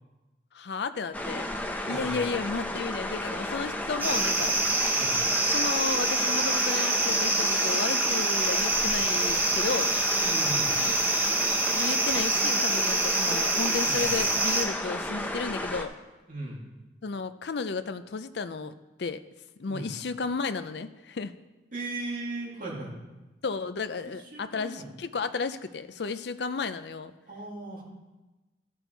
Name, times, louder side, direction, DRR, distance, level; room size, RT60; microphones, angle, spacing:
voice 1, 0.5-1.5 1.9-4.5 5.3-10.0 11.5-15.9 17.0-19.2 19.6-21.3 23.4-27.1, left 4 dB, 60° left, 11 dB, 0.5 m, -33 dB
sound 1, 1.1-15.8, left 1 dB, 10° left, 0.6 m, -33 dB
voice 2, 1.9-2.2 5.0-5.2 10.2-10.7 13.8-14.0 16.3-16.7 19.6-19.9 21.7-22.9 24.3-24.9 27.3-27.8, right 2 dB, 45° right, -3 dB, 2.4 m, -37 dB
sound 2, 4.0-14.6, right 2 dB, 10° right, 1.0 m, -26 dB
15.0 x 6.1 x 4.5 m, 1.1 s
head